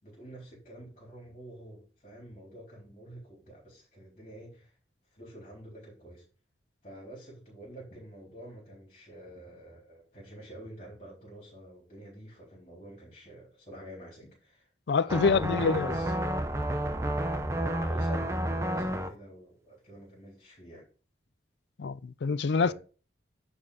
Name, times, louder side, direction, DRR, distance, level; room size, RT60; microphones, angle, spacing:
voice 1, 0.0-4.8 5.1-6.2 6.8-14.7 15.0-16.1 17.6-18.3 18.6-20.9 22.6-22.7, right 1 dB, 35° left, 3.8 m, -47 dB
voice 2, 14.9-15.9 21.8-22.7, left 5 dB, 75° left, 0.4 m, -26 dB
sound 1, 15.1-19.1, right 1 dB, 15° right, 0.7 m, -30 dB
10.0 x 4.4 x 4.8 m
head